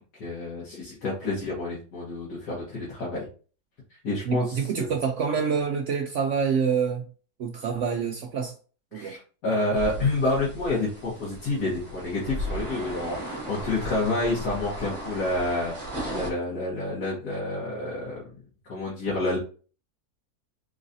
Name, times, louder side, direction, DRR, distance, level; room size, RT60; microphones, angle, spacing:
voice 1, 0.2-3.3 4.0-4.9 8.9-15.7 16.1-18.3 18.7-19.4, left 2 dB, 75° left, 1.9 m, -29 dB
voice 2, 4.3-7.1 7.4-8.5 8.9-9.2, right 6 dB, 70° right, 0.7 m, -26 dB
sound 1, 9.8-16.3, right 1 dB, 20° right, 1.1 m, -36 dB
3.9 x 3.9 x 2.7 m
omnidirectional pair, 1.7 m